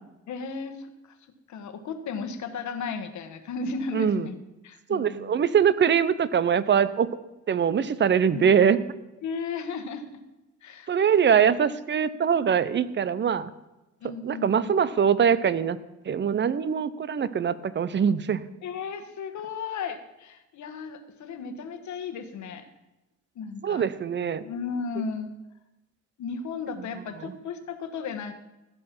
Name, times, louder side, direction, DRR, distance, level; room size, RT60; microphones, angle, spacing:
voice 1, 0.3-1.2 1.5-4.3 4.6-5.3 8.3-8.4 9.2-10.0 10.6-10.9 12.2-12.3 14.0-14.7 18.6-22.7 23.3-23.8 24.4-25.3 26.2-28.3, left 5 dB, 70° left, 9 dB, 1.3 m, -35 dB
voice 2, 4.9-7.1 7.5-8.8 10.9-13.5 14.2-15.8 16.1-18.4 23.6-24.4, right 7 dB, 40° right, 16 dB, 0.6 m, -23 dB
15.5 x 5.4 x 5.9 m, 0.99 s
cardioid pair, 90°, 30 cm